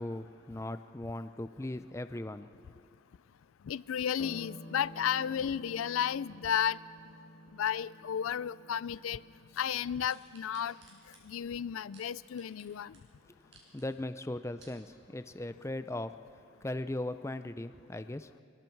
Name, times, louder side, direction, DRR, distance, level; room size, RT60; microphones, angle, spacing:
voice 1, 0.0-2.5 13.7-16.1 16.6-18.3, left 1 dB, 15° left, 11 dB, 0.5 m, -38 dB
voice 2, 3.7-6.8 7.5-9.2 9.6-10.8 11.3-13.0, left 9 dB, 90° left, 19 dB, 0.4 m, -33 dB
sound 1, 4.2-13.0, equal, 45° left, 1.5 m, -53 dB
sound 2, 10.1-12.7 12.9-13.0 13.4-13.8 14.3-14.8 15.4-15.5, right 4 dB, 65° right, 5.5 m, -59 dB
26.5 x 22.0 x 4.6 m, 2.6 s
head